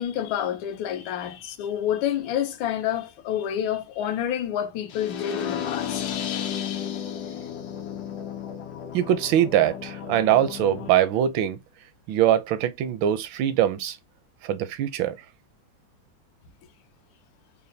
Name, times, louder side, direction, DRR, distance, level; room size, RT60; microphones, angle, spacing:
voice 1, 0.0-6.0, left 10 dB, 85° left, 1.4 m, -28 dB
sound 1, 4.9-10.9, left 9 dB, 70° left, 1.1 m, -33 dB
voice 2, 8.9-11.6 12.1-14.0 14.4-15.2, right 11 dB, 80° right, 1.3 m, -22 dB
5.4 x 2.2 x 2.6 m
omnidirectional pair, 2.1 m